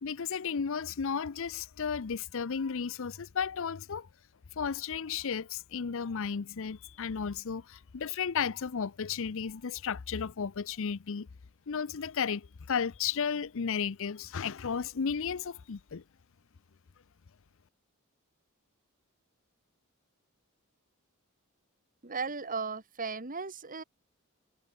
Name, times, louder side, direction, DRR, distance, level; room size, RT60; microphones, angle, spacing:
voice 1, 0.0-4.1 4.6-11.3 11.7-16.0, left 6 dB, 65° left, 0.6 m, -34 dB
voice 2, 22.0-23.8, right 4 dB, 40° right, 2.2 m, -36 dB
head